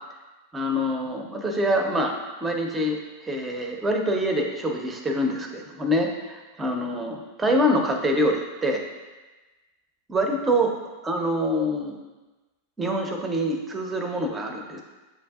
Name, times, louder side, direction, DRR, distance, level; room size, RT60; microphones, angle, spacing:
voice 1, 0.5-8.8 10.1-10.7 11.0-12.0 12.8-14.8, equal, 15° right, 2 dB, 0.7 m, -25 dB
7.7 x 2.6 x 2.4 m, 1.2 s
hypercardioid pair, 95°, 0 cm